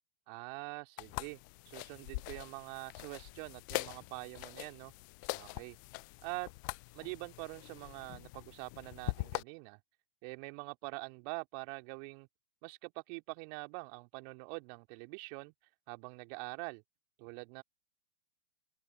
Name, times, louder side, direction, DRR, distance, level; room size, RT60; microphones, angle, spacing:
voice 1, 0.3-1.4 1.7-4.9 5.3-5.8 6.2-6.5 6.9-9.8 10.2-12.3 12.6-15.5 15.9-16.8 17.2-17.6, right 37 dB, 35° right, 3.1 m, -44 dB
sound 1, 1.0-9.4, left 26 dB, 20° left, 0.4 m, -43 dB
open air
figure-of-eight pair, 115°, 35 cm